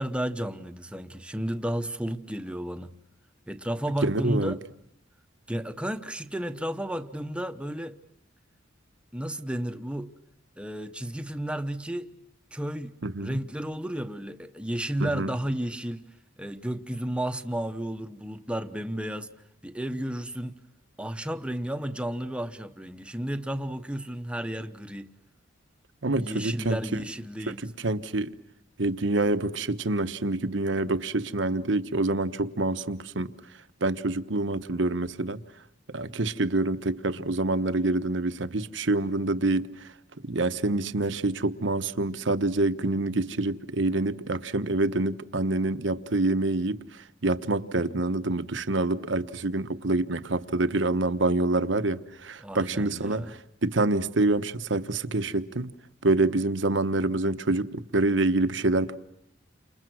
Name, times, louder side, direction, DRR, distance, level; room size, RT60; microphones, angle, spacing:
voice 1, 0.0-2.9 3.5-4.6 5.5-8.0 9.1-10.1 10.6-12.1 12.5-12.9 13.2-16.0 16.4-19.3 19.6-20.6 21.0-25.1 26.1-27.7 52.4-53.3, right 1 dB, 5° right, 1.0 m, -32 dB
voice 2, 4.0-4.6 13.0-13.4 15.0-15.3 26.0-27.0 27.5-28.3 28.8-33.3 33.8-35.4 35.9-39.9 40.2-55.7 56.0-59.0, right 2 dB, 70° right, 1.1 m, -26 dB
30.0 x 27.5 x 6.2 m
head